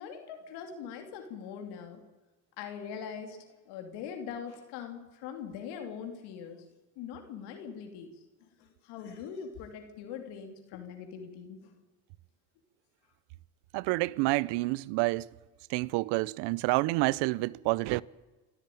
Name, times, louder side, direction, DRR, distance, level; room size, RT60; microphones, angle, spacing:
voice 1, 0.0-2.0 2.6-6.6 7.0-8.1 8.4-11.7, left 7 dB, 90° left, 2.8 m, -42 dB
voice 2, 13.7-15.3 15.7-18.0, right 22 dB, 90° right, 0.6 m, -28 dB
26.0 x 13.0 x 9.1 m
supercardioid pair, 90°, 40 cm